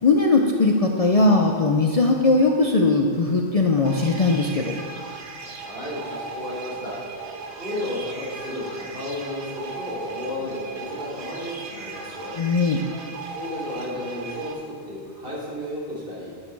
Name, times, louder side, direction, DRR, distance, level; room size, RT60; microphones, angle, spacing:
voice 1, 0.0-4.7 12.4-12.8, left 3 dB, 45° left, 1 dB, 0.5 m, -19 dB
sound 1, 3.8-14.5, right 3 dB, 85° right, 1.1 m, -37 dB
voice 2, 5.4-7.0 7.6-12.3 13.3-16.3, left 1 dB, 60° right, -8 dB, 3.4 m, -33 dB
12.0 x 6.5 x 4.6 m, 2.1 s
omnidirectional pair, 1.1 m